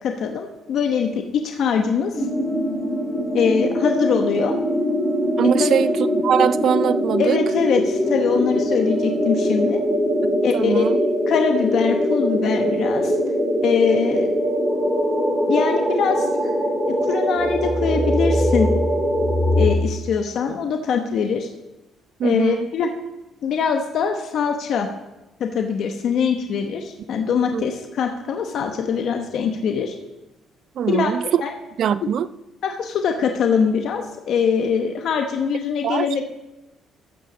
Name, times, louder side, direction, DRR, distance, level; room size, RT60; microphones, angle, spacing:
voice 1, 0.0-2.2 3.3-4.5 5.4-5.9 7.2-9.8 10.4-10.9 11.3-13.1 13.6-14.3 15.5-16.5 16.9-18.7 19.6-21.5 22.2-22.9 23.4-24.9 25.4-29.9 30.9-31.1 31.4-31.5 32.0-32.1 32.6-36.3, left 6 dB, 55° left, 0.9 m, -22 dB
sound 1, 2.1-19.7, equal, 5° left, 2.5 m, -22 dB
voice 2, 5.4-7.4 10.2-11.0 22.2-22.7 27.5-27.6 30.8-31.4 31.8-32.3 35.8-36.1, right 8 dB, 50° right, 0.4 m, -22 dB
14.5 x 5.7 x 6.1 m
cardioid pair, 155°, 0 cm